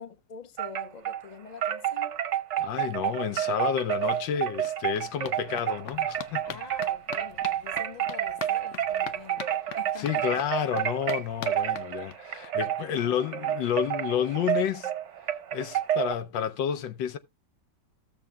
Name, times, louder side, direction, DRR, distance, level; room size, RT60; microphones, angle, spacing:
voice 1, 0.0-2.2 6.4-10.3 12.9-13.5, left 6 dB, 30° left, 1.0 m, -46 dB
Wind chime, 0.6-1.2 1.6-16.1, right 11 dB, 50° right, 0.9 m, -30 dB
voice 2, 2.6-6.6 10.0-14.9 15.5-17.2, left 9 dB, 80° left, 1.4 m, -30 dB
sound 1, 3.7-3.8 4.0-12.5 12.8-12.9 13.1-13.2 13.5-13.6, left 9 dB, 65° left, 0.7 m, -44 dB
15.5 x 7.0 x 2.2 m
omnidirectional pair, 2.0 m